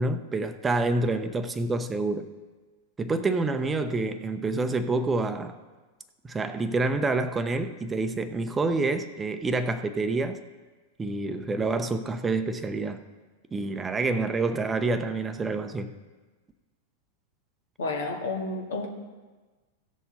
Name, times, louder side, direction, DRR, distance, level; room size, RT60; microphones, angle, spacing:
voice 1, 0.0-2.3 3.0-5.6 6.2-10.4 11.0-13.0 13.5-15.9, right 3 dB, 15° right, 10 dB, 0.8 m, -27 dB
voice 2, 17.8-18.9, left 3 dB, 70° left, 0 dB, 2.0 m, -30 dB
16.5 x 6.9 x 4.1 m, 1.3 s
figure-of-eight pair, 95°, 0 cm